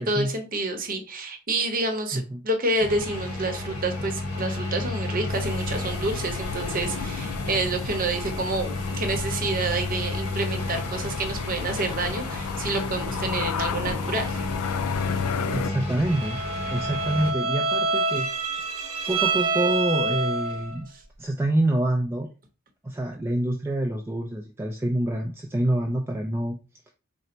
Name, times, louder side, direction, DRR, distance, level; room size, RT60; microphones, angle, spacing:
voice 1, 0.0-14.4 20.9-21.0, right 2 dB, 40° right, 4 dB, 0.8 m, -28 dB
voice 2, 2.1-2.4 15.5-16.4 16.7-18.5 19.1-20.9 21.2-22.3 22.8-26.6, right 1 dB, 10° right, 1 dB, 0.3 m, -26 dB
sound 1, 2.8-17.3, left 2 dB, 70° left, 1.0 m, -32 dB
sound 2, 5.3-15.7, left 7 dB, 85° left, 0.3 m, -33 dB
Bowed string instrument, 16.1-20.8, right 3 dB, 80° right, 0.8 m, -27 dB
4.3 x 2.1 x 3.8 m, 0.34 s
head